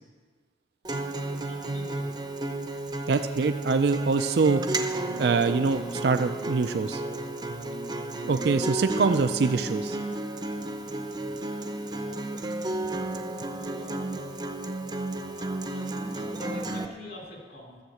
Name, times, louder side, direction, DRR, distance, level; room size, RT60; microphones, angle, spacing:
Acoustic guitar, 0.8-16.9, right 2 dB, 25° right, 0.6 m, -32 dB
voice 1, 1.4-2.1 7.6-7.7 13.5-14.3 15.2-17.8, left 1 dB, 60° left, -2 dB, 3.6 m, -45 dB
voice 2, 3.1-4.6 5.2-7.0 8.3-10.0, right 4 dB, 60° right, 8 dB, 0.4 m, -24 dB
13.0 x 7.2 x 7.8 m, 1.5 s
head